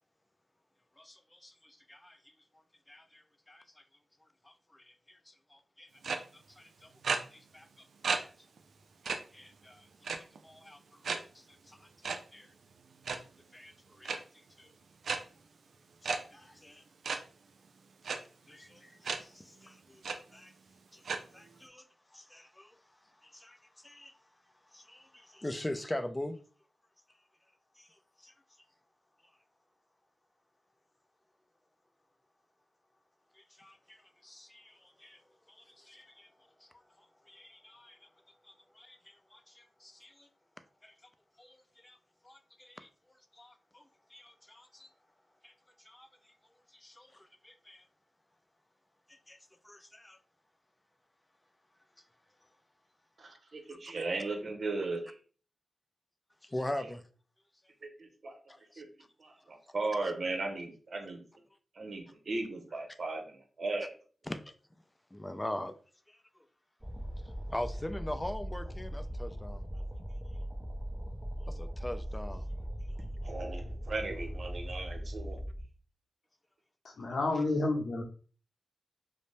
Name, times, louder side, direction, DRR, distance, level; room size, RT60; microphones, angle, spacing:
voice 1, 1.0-2.2 2.9-3.6 4.5-6.9 7.3-7.7 9.3-9.9 10.4-10.8 11.1-12.5 13.5-14.2 14.6-14.7 16.0-16.8 18.1-18.2 18.5-20.0 20.3-20.5 20.9-21.0 21.3-21.9 22.1-22.7 23.2-23.6 23.8-24.1 24.7-26.4 27.8-27.9 28.2-28.3 33.6-35.2 35.5-36.3 37.3-38.0 38.5-40.3 40.8-40.9 41.4-42.0 42.2-42.9 43.4-43.8 44.1-44.9 45.4-45.5 45.8-46.1 46.8-47.8 49.1-49.4 49.6-50.2 56.4-57.0 58.5-58.8 64.3-64.5 65.1-65.7 67.5-69.6 71.5-72.4 77.4-77.5, left 1 dB, 20° left, 0.4 m, -43 dB
sound 1, 6.0-6.2 7.0-7.2 8.0-8.2 8.6-8.7 9.0-9.2 10.0-10.4 11.0-11.2 12.0-12.2 12.9-13.2 14.0-14.2 15.0-15.2 16.0-16.2 17.0-17.2 18.0-18.2 19.0-19.2 19.6-19.7 20.0-20.1 21.0-21.2, right 4 dB, 75° right, 0.3 m, -32 dB
voice 2, 53.2-55.1 56.8-56.9 57.8-58.3 58.8-58.9 59.2-61.2 61.7-63.9 73.2-75.4, right 3 dB, 60° right, 0.7 m, -37 dB
sound 2, 66.8-75.6, equal, 10° right, 0.7 m, -39 dB
voice 3, 77.0-78.0, left 2 dB, 65° left, 0.7 m, -30 dB
2.6 x 2.0 x 3.2 m
cardioid pair, 50°, 0 cm